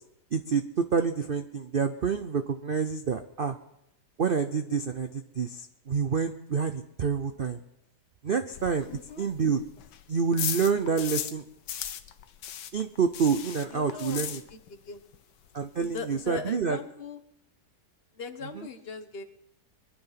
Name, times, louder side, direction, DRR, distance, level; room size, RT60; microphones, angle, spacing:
voice 1, 0.3-3.6 4.2-7.6 8.2-8.9 9.2-9.6 10.1-11.4 12.7-14.4 15.5-16.8, right 6 dB, 55° right, 8 dB, 0.6 m, -28 dB
sound 1, 8.5-11.4 11.7-14.9 15.1-15.2 15.6-15.7 15.8-16.3, left 10 dB, 85° left, 1.5 m, -36 dB
voice 2, 8.9-9.3 13.7-14.2 14.5-15.0 15.8-17.2 18.1-19.2, left 5 dB, 40° left, 7 dB, 1.3 m, -40 dB
23.5 x 9.8 x 5.8 m, 0.83 s
omnidirectional pair, 1.8 m